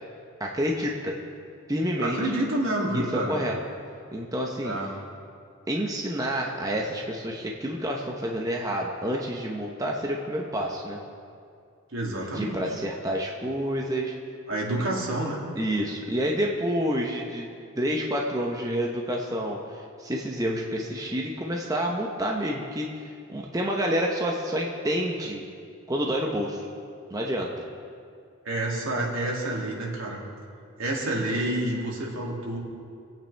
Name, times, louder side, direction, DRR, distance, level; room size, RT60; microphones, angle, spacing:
voice 1, 0.4-1.2 1.7-2.2 2.9-3.6 4.1-4.8 5.7-11.0 12.3-14.1 15.6-17.5 17.7-25.4 25.9-26.7 27.1-27.7, equal, 15° right, -1 dB, 0.8 m, -28 dB
voice 2, 2.0-3.4 4.6-4.9 11.9-12.6 14.5-15.4 28.4-30.2 30.8-32.6, right 1 dB, 70° right, -3 dB, 2.6 m, -28 dB
24.5 x 8.9 x 3.4 m, 2.3 s
head